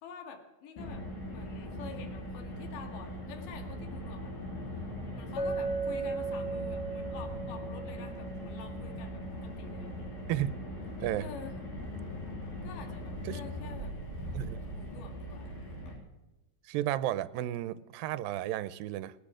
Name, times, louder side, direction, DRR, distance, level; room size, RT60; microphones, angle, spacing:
voice 1, 0.0-1.0 1.3-4.3 5.2-9.9 11.2-11.6 12.6-13.9 14.8-15.8, left 6 dB, 70° left, 4 dB, 3.4 m, -48 dB
Car, 0.8-16.0, equal, 85° left, 5.5 m, -40 dB
Chink clink, 5.4-9.4, right 3 dB, 40° left, 1.6 m, -37 dB
voice 2, 14.3-14.6 16.7-19.1, right 13 dB, 85° right, 16 dB, 2.4 m, -33 dB
28.5 x 10.0 x 5.0 m, 1.1 s
omnidirectional pair, 4.1 m